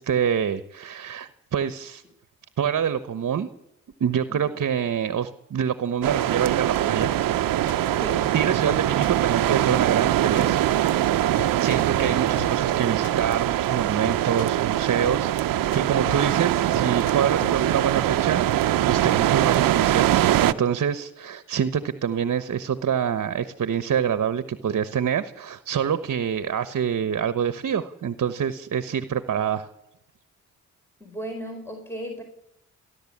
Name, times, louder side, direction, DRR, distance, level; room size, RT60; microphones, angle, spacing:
voice 1, 0.0-2.0 2.6-3.5 4.0-7.4 8.3-10.6 11.6-15.4 15.7-29.7, right 8 dB, 60° right, 12 dB, 1.2 m, -26 dB
voice 2, 4.3-4.6 8.0-8.3 31.0-32.2, equal, 5° left, 2 dB, 4.5 m, -36 dB
sound 1, 6.0-20.5, right 13 dB, 90° right, 0.8 m, -22 dB
sound 2, 7.0-17.6, left 6 dB, 80° left, 2.2 m, -39 dB
29.5 x 11.5 x 8.7 m, 0.84 s
cardioid pair, 70°, 33 cm